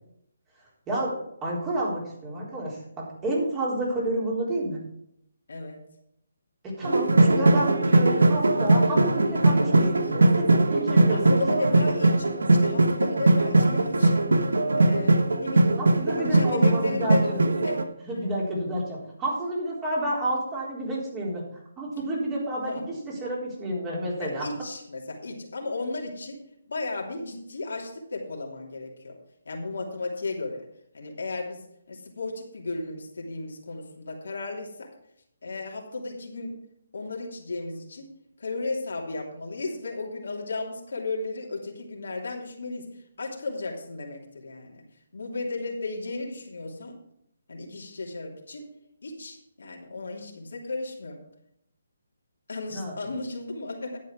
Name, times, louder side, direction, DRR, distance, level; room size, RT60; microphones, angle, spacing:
voice 1, 0.9-4.8 6.6-11.4 15.8-17.5 18.0-21.4 21.8-24.4 52.7-53.0, right 1 dB, 20° right, -4 dB, 3.9 m, -30 dB
voice 2, 5.5-5.8 11.1-12.3 12.6-14.2 14.8-15.8 16.2-17.3 17.6-17.8 22.7-22.8 24.2-26.4 26.7-29.2 29.4-30.6 30.9-31.6 31.9-34.9 35.4-36.6 36.9-38.1 38.4-42.9 43.2-44.8 45.1-46.9 47.5-48.7 49.0-51.2 52.5-54.0, left 3 dB, 75° left, 0 dB, 2.8 m, -34 dB
sound 1, 6.8-17.8, right 2 dB, 85° right, 1.2 m, -20 dB
11.0 x 8.3 x 4.8 m, 0.75 s
hypercardioid pair, 150°, 0 cm